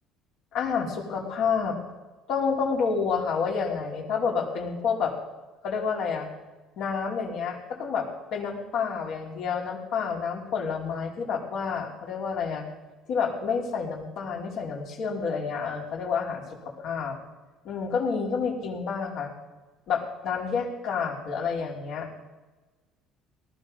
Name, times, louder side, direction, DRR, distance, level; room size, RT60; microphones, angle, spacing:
voice 1, 0.5-1.8 2.3-5.1 5.6-6.3 6.8-12.6 13.1-16.4 16.8-17.2 17.6-19.3 19.9-22.3, left 5 dB, 65° left, 0 dB, 3.1 m, -29 dB
18.5 x 13.0 x 5.3 m, 1.2 s
supercardioid pair, 80°, 0 cm